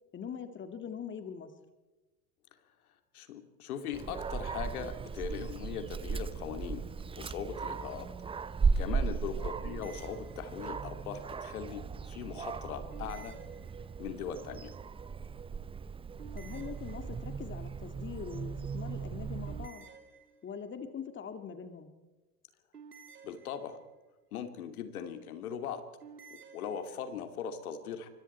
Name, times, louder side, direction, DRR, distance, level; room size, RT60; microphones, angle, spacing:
voice 1, 0.1-1.5 9.4-9.6 16.3-19.9 20.4-21.9, left 7 dB, 25° left, 9 dB, 2.1 m, -43 dB
voice 2, 3.1-6.8 7.2-8.1 8.8-11.8 12.1-13.3 14.0-14.7 23.2-23.8 24.3-25.8 26.5-28.1, left 7 dB, 70° left, 8 dB, 2.6 m, -39 dB
Dog, 3.9-19.7, right 5 dB, 10° right, 0.6 m, -37 dB
sound 1, 9.6-10.9 12.9-14.2 16.2-17.5 19.5-20.8 22.7-24.0 26.0-26.9, right 6 dB, 90° right, 2.5 m, -54 dB
26.5 x 24.0 x 4.5 m, 1.2 s
hypercardioid pair, 85°, 45 cm